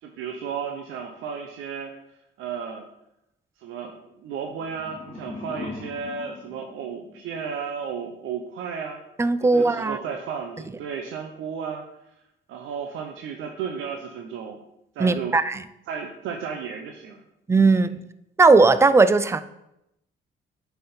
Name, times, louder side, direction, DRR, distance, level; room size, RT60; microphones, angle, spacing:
voice 1, 0.0-1.9 2.4-2.8 3.6-9.0 9.4-11.8 12.5-14.6 14.9-15.4 15.9-17.2 17.7-17.8, right 6 dB, 85° right, 3 dB, 0.7 m, -33 dB
sound 1, 4.4-7.5, left 3 dB, 25° left, 1.1 m, -40 dB
voice 2, 9.2-10.0 15.0-15.6 17.5-17.9 18.4-19.4, right 3 dB, 15° right, 13 dB, 0.4 m, -17 dB
9.1 x 3.5 x 4.3 m, 0.85 s
cardioid pair, 90°, 20 cm